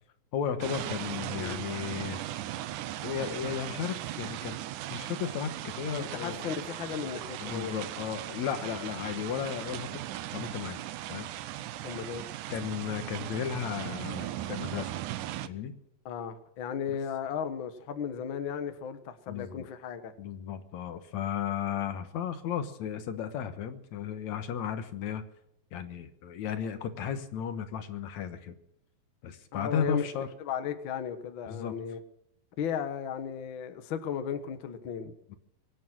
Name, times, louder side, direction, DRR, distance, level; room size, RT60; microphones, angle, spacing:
voice 1, 0.3-2.2 3.0-4.6 4.9-6.5 7.4-10.0 10.3-10.8 11.1-11.3 12.5-14.9 15.4-15.8 16.9-17.0 19.3-19.7 20.2-25.2 25.7-28.6 29.2-30.3 31.5-31.8 35.3-35.4, left 8 dB, 65° left, 9 dB, 2.1 m, -34 dB
sound 1, 0.6-15.5, right 13 dB, 75° right, 1.9 m, -38 dB
voice 2, 1.3-1.6 6.0-7.7 11.8-12.3 16.0-20.1 29.5-30.0 30.4-32.0 32.6-35.1, left 8 dB, 80° left, 8 dB, 1.1 m, -35 dB
24.0 x 9.4 x 6.1 m, 0.82 s
omnidirectional pair, 4.2 m